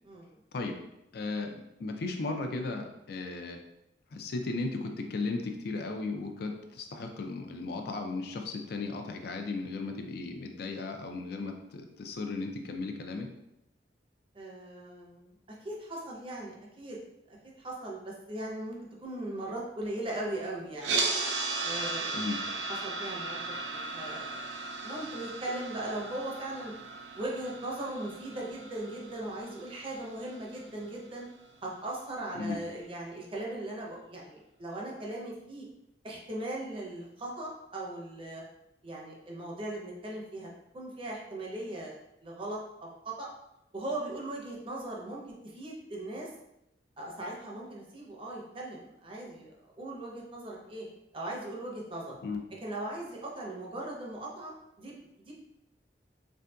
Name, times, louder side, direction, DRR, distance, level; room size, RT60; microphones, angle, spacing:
voice 1, 1.1-3.6 4.1-13.3 22.1-22.4 32.4-32.6 52.2-52.4, left 3 dB, 60° left, 5 dB, 0.4 m, -36 dB
voice 2, 14.3-17.0 17.3-21.0 21.6-26.7 27.2-31.2 31.6-35.7 36.0-38.4 38.8-43.3 43.7-46.3 47.0-50.9 51.1-52.1 52.6-54.5 54.8-55.3, right 1 dB, 30° right, -3 dB, 0.6 m, -39 dB
sound 1, 20.8-30.9, right 3 dB, 90° right, 0.4 m, -36 dB
3.5 x 2.6 x 2.2 m, 0.85 s
head